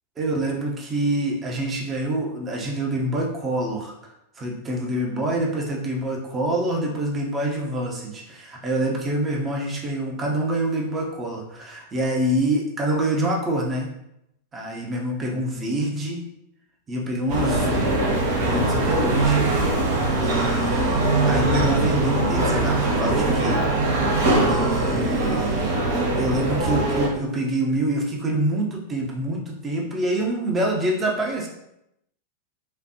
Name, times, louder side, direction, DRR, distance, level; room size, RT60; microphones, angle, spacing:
voice 1, 0.2-4.0 4.4-13.9 14.5-16.3 16.9-17.9 18.4-19.4 20.2-23.6 24.5-25.8 26.2-31.5, right 1 dB, 20° right, 0 dB, 0.9 m, -26 dB
sound 1, 17.3-27.1, right 2 dB, 50° right, 0.9 m, -21 dB
5.1 x 2.5 x 2.8 m, 0.82 s
figure-of-eight pair, 90°, 0 cm